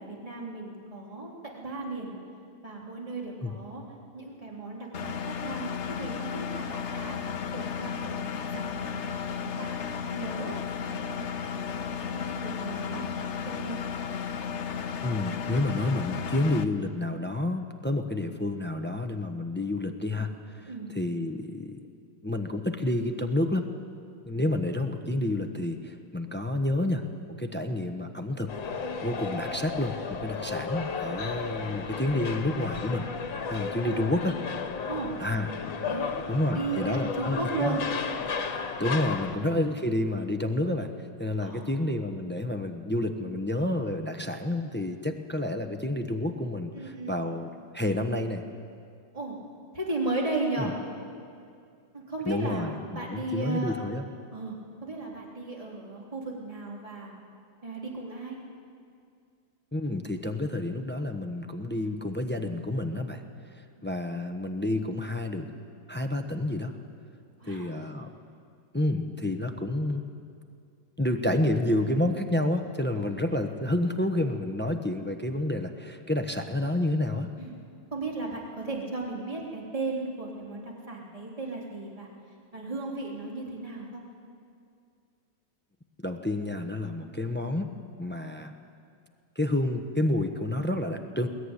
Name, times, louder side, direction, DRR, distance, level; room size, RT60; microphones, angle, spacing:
voice 1, 0.0-2.1 2.6-3.8 4.1-5.7 6.0-7.2 7.5-9.7 10.1-13.1 13.5-13.8 20.7-20.9 33.8-34.0 34.9-35.1 35.9-36.1 36.5-37.8 39.3-39.5 41.4-41.8 46.7-47.4 49.1-49.3 49.7-50.8 51.9-53.8 54.3-57.1 57.6-58.4 63.8-63.9 67.4-67.7 72.9-73.1 77.4-77.5 77.9-82.1 82.5-84.0, right 2 dB, 15° right, -2 dB, 3.4 m, -35 dB
Engine, 4.9-16.6, left 6 dB, 50° left, 0.9 m, -34 dB
voice 2, 15.0-21.8 22.2-23.7 24.3-27.0 27.4-28.5 29.0-33.1 33.5-34.3 35.2-35.5 36.3-37.8 38.8-40.9 41.2-47.5 47.7-48.4 50.6-50.7 52.2-52.8 53.1-54.0 59.7-63.2 63.8-65.5 65.9-66.7 67.5-68.1 68.7-70.1 71.0-77.3 86.0-87.7 88.0-88.5 89.4-91.3, left 1 dB, 10° left, 6 dB, 0.6 m, -29 dB
sound 1, 28.5-39.4, left 5 dB, 70° left, 2.2 m, -34 dB
21.0 x 20.5 x 9.8 m, 2.3 s
omnidirectional pair, 2.2 m